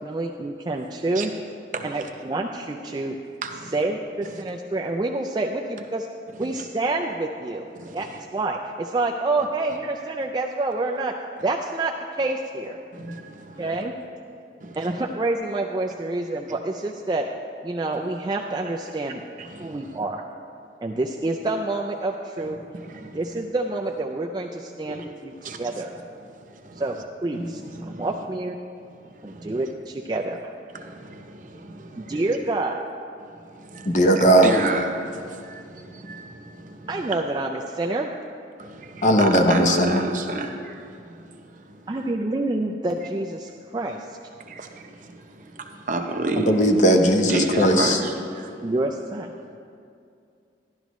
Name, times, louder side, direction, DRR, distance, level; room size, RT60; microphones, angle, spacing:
voice 1, 0.0-1.3 1.8-3.2 3.7-6.1 6.4-7.7 7.9-11.1 11.4-12.8 13.6-13.9 14.8-17.3 17.6-19.2 19.6-20.2 20.8-22.6 22.9-25.9 26.8-27.0 27.2-27.6 27.9-28.6 29.2-30.5 32.0-32.8 36.9-38.1 41.9-44.1 48.6-49.3, right 2 dB, 25° right, 1 dB, 0.3 m, -27 dB
voice 2, 1.7-2.1 3.4-3.8 4.2-4.3 6.3-6.6 7.8-8.2 12.9-13.8 14.6-15.0 16.5-16.6 19.4-20.0 22.4-23.4 23.9-24.0 24.9-25.1 25.3-25.8 26.2-27.0 27.3-28.1 28.8-29.7 30.7-32.4 33.2-37.1 38.6-42.1 43.5-43.6 44.4-46.6 47.2-48.8 49.5-49.6, right 2 dB, 45° right, 4 dB, 0.7 m, -33 dB
voice 3, 33.8-34.5 39.0-40.0 46.5-48.0, right 1 dB, 40° left, 4 dB, 0.7 m, -17 dB
12.0 x 11.5 x 3.1 m, 2.4 s
head